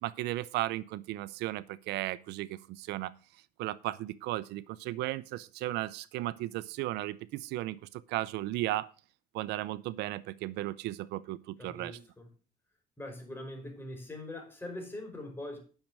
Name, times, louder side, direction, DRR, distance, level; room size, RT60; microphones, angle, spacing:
voice 1, 0.0-3.1 3.6-8.9 9.3-12.0, right 16 dB, 85° right, 18 dB, 0.6 m, -35 dB
voice 2, 11.6-12.3 13.0-15.6, left 1 dB, 15° left, 2 dB, 5.2 m, -42 dB
10.5 x 6.6 x 6.1 m, 0.37 s
cardioid pair, 110°, 17 cm